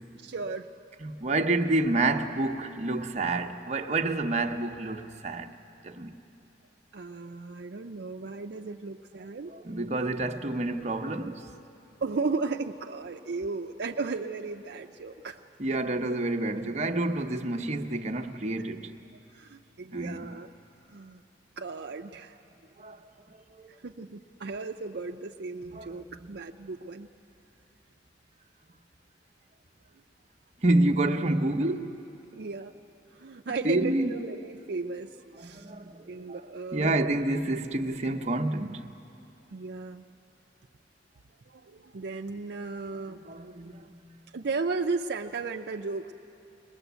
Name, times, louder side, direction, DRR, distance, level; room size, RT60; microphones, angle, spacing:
voice 1, 0.1-0.7 6.9-9.5 12.0-15.4 19.3-20.5 20.9-21.2 21.6-22.4 23.8-27.1 32.3-32.7 33.1-35.7 36.1-37.1 39.5-40.0 41.5-43.3 44.3-46.1, right 4 dB, 65° right, 0.5 m, -35 dB
voice 2, 1.0-5.5 5.8-6.2 9.5-11.5 15.6-18.9 19.9-20.4 22.8-23.0 23.6-23.7 25.6-26.4 30.6-32.0 33.6-34.1 35.4-36.4 36.7-38.9 43.1-43.9, right 2 dB, 40° right, 0.8 m, -29 dB
21.0 x 20.0 x 8.1 m
head